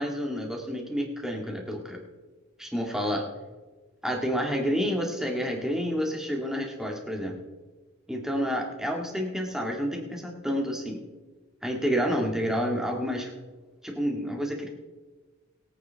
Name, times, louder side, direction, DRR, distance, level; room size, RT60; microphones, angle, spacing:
voice 1, 0.0-2.0 2.6-3.3 4.0-7.4 8.1-11.0 11.6-13.3 13.8-14.7, equal, ahead, 0 dB, 1.9 m, -29 dB
22.5 x 8.7 x 3.5 m, 1.3 s
head